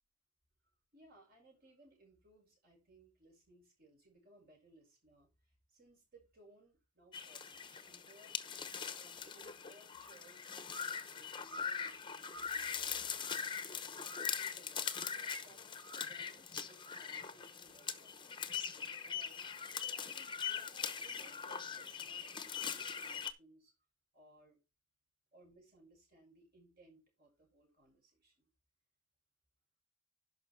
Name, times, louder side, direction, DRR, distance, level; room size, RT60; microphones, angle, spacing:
voice 1, 0.9-8.4 9.0-15.6 15.9-18.5 19.0-23.7 24.1-24.6 25.3-28.5, right 2 dB, 50° right, 6.6 m, -64 dB
sound 1, 7.1-23.3, left 7 dB, 25° left, 0.9 m, -42 dB
11.0 x 5.9 x 4.5 m
head